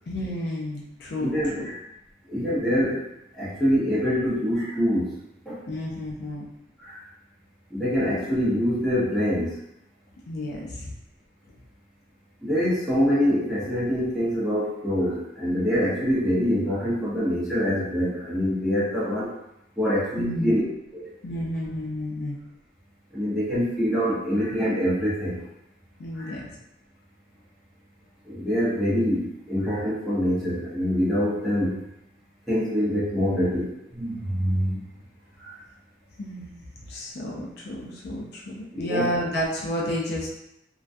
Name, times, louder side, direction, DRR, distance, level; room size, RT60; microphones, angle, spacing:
voice 1, 0.1-1.7 5.7-6.5 10.3-10.9 20.2-20.6 21.2-22.4 26.0-26.5 36.2-36.6 36.9-40.3, equal, 55° left, -3 dB, 0.4 m, -31 dB
voice 2, 1.2-1.8 2.3-3.0 3.3-5.2 5.5-5.6 6.8-7.0 7.7-9.6 12.4-19.3 19.8-20.6 20.9-21.1 23.1-25.4 26.1-26.3 28.2-31.8 32.5-34.8 35.4-35.6 38.7-39.1, equal, ahead, -10 dB, 0.8 m, -25 dB
2.3 x 2.2 x 2.5 m, 0.83 s
head